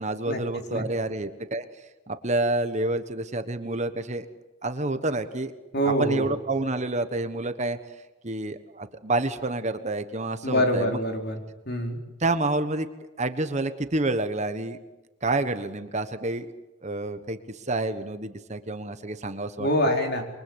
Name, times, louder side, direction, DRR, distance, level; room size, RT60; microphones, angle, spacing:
voice 1, 0.0-1.6 2.1-4.3 4.6-5.5 5.8-7.8 8.2-11.0 12.2-12.9 13.2-14.8 15.2-16.5 16.8-19.7, right 2 dB, 30° right, 10 dB, 1.2 m, -28 dB
voice 2, 5.7-6.3 10.4-11.4 11.7-12.0 19.6-20.2, equal, 50° left, 3 dB, 4.4 m, -25 dB
27.0 x 23.5 x 8.1 m, 1.0 s
head